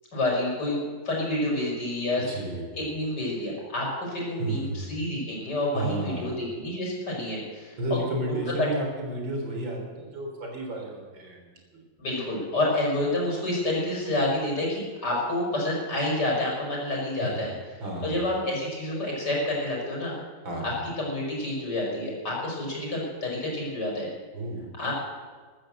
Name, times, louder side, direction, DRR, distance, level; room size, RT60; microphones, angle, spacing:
voice 1, 0.1-0.8 1.0-2.3 2.7-8.0 8.3-8.7 12.0-17.5 18.0-20.1 21.0-24.1 24.8-24.9, left 1 dB, 60° left, -3 dB, 6.1 m, -28 dB
voice 2, 2.2-2.7 4.4-4.8 5.7-6.4 7.8-11.4 11.7-11.8 17.2-17.4 17.8-18.2 20.4-20.8 24.3-24.9, right 1 dB, 85° right, 1 dB, 4.3 m, -32 dB
14.0 x 13.0 x 7.8 m, 1.5 s
omnidirectional pair, 2.0 m